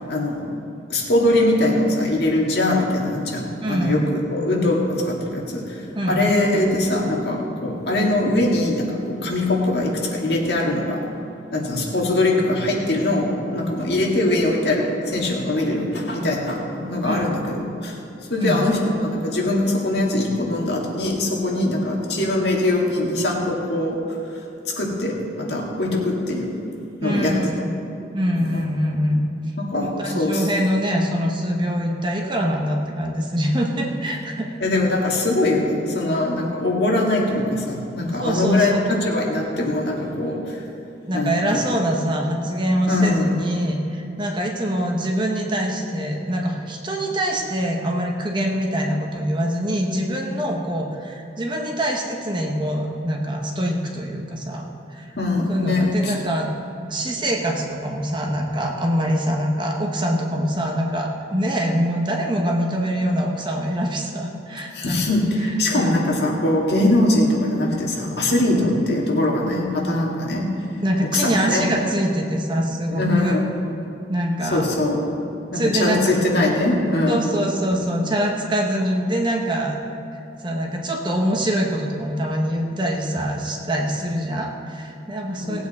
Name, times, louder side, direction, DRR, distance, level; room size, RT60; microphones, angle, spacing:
voice 1, 0.1-0.4 0.9-11.0 11.5-17.6 17.8-18.0 18.3-24.2 24.7-26.6 27.0-27.3 28.4-28.6 29.6-30.5 34.6-40.6 41.1-41.4 41.7-41.8 42.9-43.3 55.2-56.1 64.7-70.4 71.1-71.7 72.9-73.4 74.5-75.1 75.5-77.4 85.4-85.6, left 1 dB, 65° left, -2 dB, 1.9 m, -22 dB
voice 2, 3.6-4.0 5.9-6.2 17.0-17.2 18.4-18.6 21.6-21.7 27.0-27.7 28.1-29.2 29.8-34.5 38.2-38.8 41.1-54.7 54.9-55.1 55.5-56.5 56.9-65.0 65.4-65.9 68.5-68.7 70.8-73.4 74.1-74.7 75.5-76.2 77.1-79.8 80.4-85.7, equal, 25° right, 0 dB, 1.0 m, -24 dB
18.5 x 8.6 x 4.2 m, 2.7 s
head